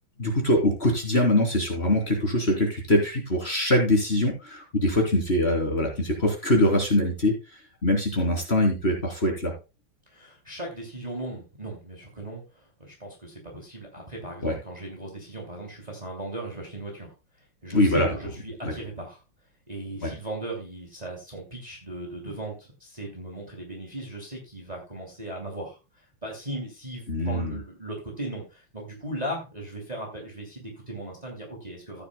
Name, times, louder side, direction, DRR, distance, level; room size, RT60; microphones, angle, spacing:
voice 1, 0.2-7.3 7.8-9.5 14.4-14.5 17.7-18.1 18.6-18.7 20.0-20.1 27.1-27.6, left 1 dB, 25° left, 0 dB, 3.4 m, -23 dB
voice 2, 10.1-17.1 17.6-19.2 19.7-25.8 26.2-32.0, right 1 dB, 20° right, 0 dB, 2.6 m, -37 dB
14.5 x 9.6 x 2.2 m, 0.29 s
omnidirectional pair, 2.4 m